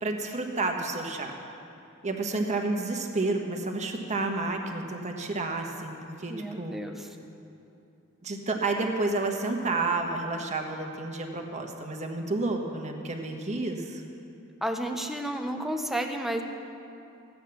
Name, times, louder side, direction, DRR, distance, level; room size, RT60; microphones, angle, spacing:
voice 1, 0.0-1.3 2.0-6.8 8.2-14.0, right 2 dB, 35° right, 3 dB, 1.3 m, -30 dB
voice 2, 6.3-7.2 14.6-16.4, right 1 dB, ahead, 4 dB, 0.8 m, -32 dB
15.0 x 9.3 x 7.1 m, 2.7 s
head